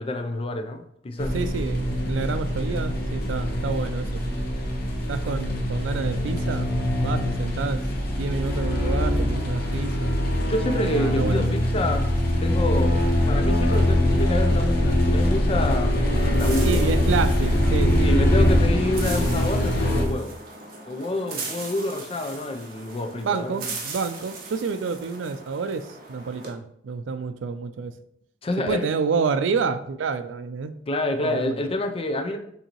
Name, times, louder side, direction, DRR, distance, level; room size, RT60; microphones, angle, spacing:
voice 1, 0.0-1.4 10.5-12.1 12.4-13.0 13.3-16.8 18.0-20.3 20.9-23.6 28.4-28.9 30.9-32.4, left 1 dB, 30° left, 6 dB, 0.5 m, -28 dB
sound 1, 1.2-20.1, left 1 dB, 55° left, 0.9 m, -23 dB
voice 2, 1.3-4.4 5.1-6.7 7.0-7.8 8.1-10.2 11.0-11.4 16.6-18.5 23.2-27.9 28.7-30.8 31.2-31.6, right 5 dB, 85° right, 11 dB, 0.4 m, -28 dB
sound 2, 16.2-26.5, right 4 dB, 50° right, 0.9 m, -39 dB
6.5 x 2.7 x 2.9 m, 0.71 s
head